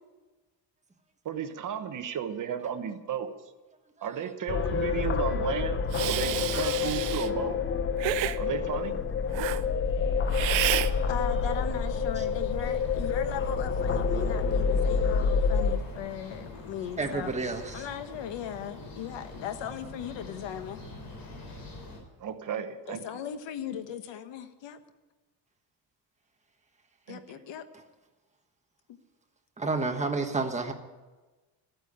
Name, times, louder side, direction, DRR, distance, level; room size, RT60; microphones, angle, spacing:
voice 1, 1.2-3.3 4.0-5.8 6.1-7.6 8.4-9.0 22.2-23.2 27.1-27.4, right 8 dB, 45° right, 8 dB, 1.1 m, -34 dB
sound 1, 4.5-15.8, left 5 dB, 30° left, 0.7 m, -28 dB
Hiss, 5.9-7.3 8.0-8.4 9.3-9.6 10.3-10.9, right 14 dB, 90° right, 0.8 m, -30 dB
sound 2, 11.0-22.0, left 2 dB, 50° left, 4.6 m, -43 dB
voice 2, 11.1-17.3 17.7-20.8 22.9-24.8 27.1-27.6, left 9 dB, 75° left, 9 dB, 1.3 m, -38 dB
voice 3, 17.0-17.9 27.7-27.8 29.6-30.7, right 3 dB, 15° right, 4 dB, 1.4 m, -30 dB
14.0 x 9.2 x 8.7 m, 1.2 s
cardioid pair, 160°, 44 cm